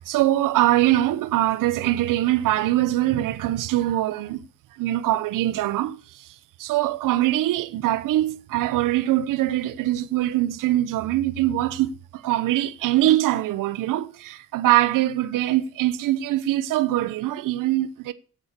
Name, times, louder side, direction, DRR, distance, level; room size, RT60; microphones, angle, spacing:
voice 1, 0.0-4.4 4.7-18.1, right 14 dB, 90° right, 1.0 m, -23 dB
12.5 x 9.1 x 6.6 m
cardioid pair, 155°, 31 cm